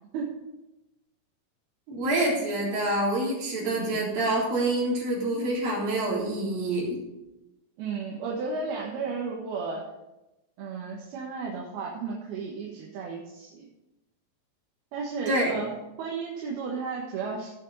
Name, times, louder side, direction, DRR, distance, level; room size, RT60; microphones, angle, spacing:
voice 1, 1.9-7.0 15.3-15.6, right 1 dB, 65° right, -5 dB, 5.3 m, -27 dB
voice 2, 3.7-4.1 7.8-9.8 10.6-13.6 14.9-17.5, right 4 dB, 85° right, -3 dB, 3.4 m, -34 dB
16.5 x 7.1 x 4.1 m, 0.97 s
omnidirectional pair, 4.3 m